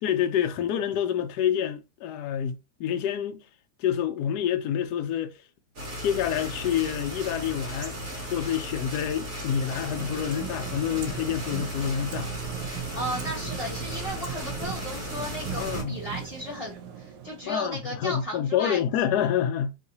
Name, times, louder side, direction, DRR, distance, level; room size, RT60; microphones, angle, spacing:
voice 1, 0.0-3.4 3.8-5.4 6.0-12.3 15.5-15.9 17.5-19.8, left 9 dB, 70° left, 1.0 m, -28 dB
sound 1, 5.8-15.8, equal, 55° right, 1.4 m, -36 dB
sound 2, 9.6-17.8, right 9 dB, 85° right, 1.4 m, -38 dB
voice 2, 12.9-18.8, equal, 20° left, 1.4 m, -35 dB
3.6 x 2.8 x 2.7 m
omnidirectional pair, 2.0 m